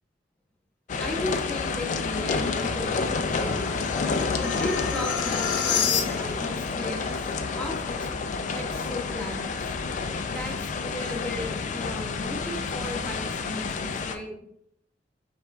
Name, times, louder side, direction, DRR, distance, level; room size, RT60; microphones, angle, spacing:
sound 1, 0.9-14.2, left 4 dB, 40° left, 0.3 m, -29 dB
voice 1, 1.0-3.9 4.4-8.0 8.5-9.7 10.3-14.3, left 1 dB, 5° left, -1 dB, 0.7 m, -36 dB
sound 2, 1.5-6.5, left 7 dB, 80° left, 0.6 m, -31 dB
5.7 x 3.6 x 2.3 m, 0.72 s
head